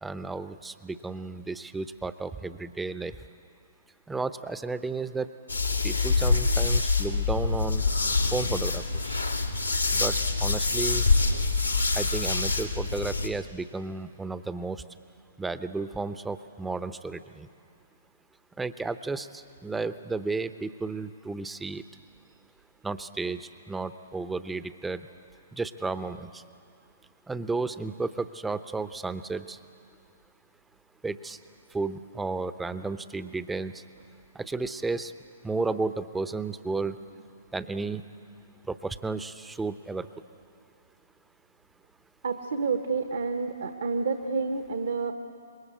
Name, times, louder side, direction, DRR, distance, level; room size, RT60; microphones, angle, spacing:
voice 1, 0.0-3.1 4.1-5.3 5.8-7.8 8.3-9.2 9.9-10.1 10.4-11.1 11.9-14.8 15.4-17.5 18.6-21.8 22.8-25.0 25.6-26.4 27.3-29.6 31.0-31.4 31.7-33.7 34.3-35.1 35.4-37.0 37.5-38.0 38.7-40.1, right 3 dB, 5° right, 13 dB, 0.8 m, -33 dB
sound 1, 5.5-13.3, left 3 dB, 90° left, 2.4 m, -25 dB
voice 2, 42.2-45.1, right 4 dB, 65° right, 6 dB, 1.2 m, -29 dB
26.0 x 21.5 x 8.4 m, 2.4 s
figure-of-eight pair, 120°, 0 cm